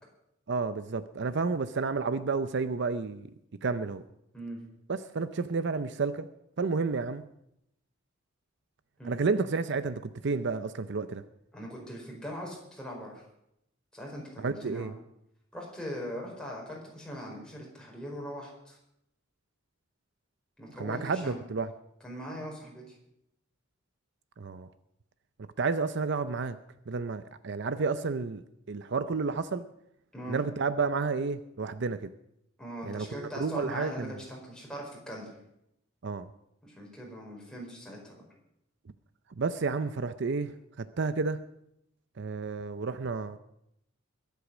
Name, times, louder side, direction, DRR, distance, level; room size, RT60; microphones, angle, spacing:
voice 1, 0.5-3.3 3.6-4.0 4.9-6.3 6.6-7.3 9.1-11.2 14.4-14.9 20.8-21.7 24.4-24.7 25.6-26.6 26.9-28.4 28.7-29.6 30.3-32.1 32.8-34.1 36.0-36.3 39.4-41.4 42.2-43.4, right 4 dB, 60° right, 12 dB, 0.6 m, -31 dB
voice 2, 11.5-13.2 13.9-14.9 15.5-18.8 20.6-21.4 22.0-22.9 30.1-30.4 32.6-35.3 36.6-38.2, equal, 5° left, -2 dB, 4.8 m, -41 dB
22.5 x 8.3 x 6.2 m, 0.80 s
head